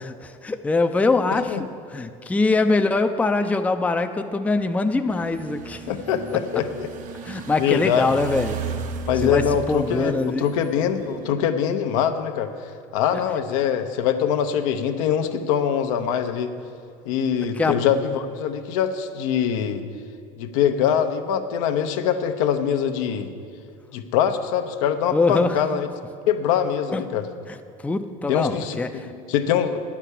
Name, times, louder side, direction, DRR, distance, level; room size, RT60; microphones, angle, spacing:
voice 1, 0.0-1.6 1.9-5.8 7.2-8.6 9.2-10.5 13.1-13.2 17.5-17.8 25.1-25.6 26.9-27.0 27.5-27.6 27.8-29.1, left 3 dB, 10° left, 7 dB, 0.4 m, -23 dB
sound 1, 5.1-11.3, right 6 dB, 50° right, 0.8 m, -35 dB
voice 2, 5.9-6.9 7.6-8.1 9.1-12.5 12.9-16.5 17.1-19.8 20.4-23.3 23.9-25.9 26.3-27.3 28.3-28.8 29.3-29.8, left 8 dB, 80° left, 7 dB, 0.8 m, -23 dB
9.8 x 5.9 x 8.2 m, 2.4 s
supercardioid pair, 105°, 17 cm